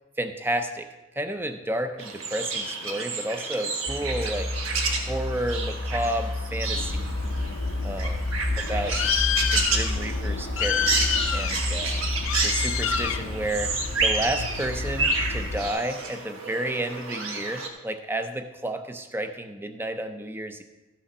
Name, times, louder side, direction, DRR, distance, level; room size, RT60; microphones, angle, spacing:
voice 1, 0.2-0.9 1.1-4.6 5.1-7.2 7.8-8.2 8.6-12.0 12.4-20.6, right 1 dB, 10° right, 8 dB, 0.6 m, -31 dB
sound 1, 2.0-17.7, right 4 dB, 85° right, 1.5 m, -30 dB
sound 2, 3.9-12.9, left 2 dB, 45° right, 1.6 m, -32 dB
Bird, 6.7-15.7, left 5 dB, 75° left, 0.6 m, -29 dB
14.0 x 6.2 x 5.5 m, 1.1 s
head